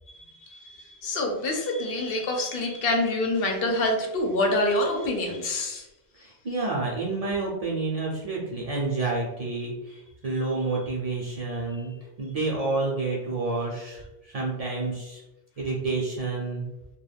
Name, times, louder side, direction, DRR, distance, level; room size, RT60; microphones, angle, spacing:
voice 1, 1.0-5.8, left 1 dB, 70° left, 2 dB, 0.8 m, -26 dB
voice 2, 6.2-11.9 12.2-15.2 15.6-16.7, right 3 dB, 50° right, -3 dB, 0.5 m, -29 dB
2.2 x 2.2 x 3.3 m, 0.97 s
omnidirectional pair, 1.0 m